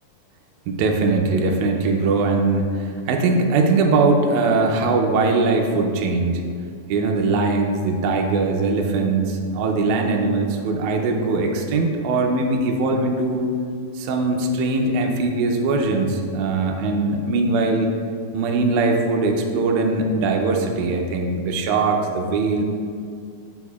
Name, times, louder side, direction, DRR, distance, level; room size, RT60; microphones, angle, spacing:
voice 1, 0.7-6.4 6.9-13.5 14.0-17.9 18.3-22.6, right 3 dB, 80° right, 2 dB, 1.8 m, -21 dB
7.7 x 6.3 x 2.3 m, 2.2 s
omnidirectional pair, 4.0 m